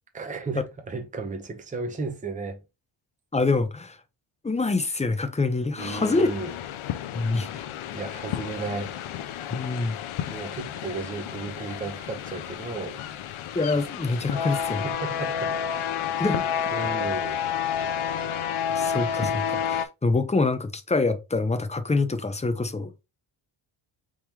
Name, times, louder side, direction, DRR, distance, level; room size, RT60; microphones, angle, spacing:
voice 1, 0.1-2.6 5.7-6.6 7.9-9.0 10.3-13.0 14.8-15.5 16.7-17.4, right 3 dB, 15° right, 0.8 m, -34 dB
voice 2, 3.3-4.0 4.4-6.3 7.1-7.6 9.5-10.0 13.5-14.9 16.2-16.4 18.7-22.9, left 3 dB, 15° left, 0.6 m, -25 dB
sound 1, 5.8-19.9, left 8 dB, 80° left, 0.7 m, -30 dB
4.6 x 3.7 x 2.8 m
wide cardioid pair, 135°, 48 cm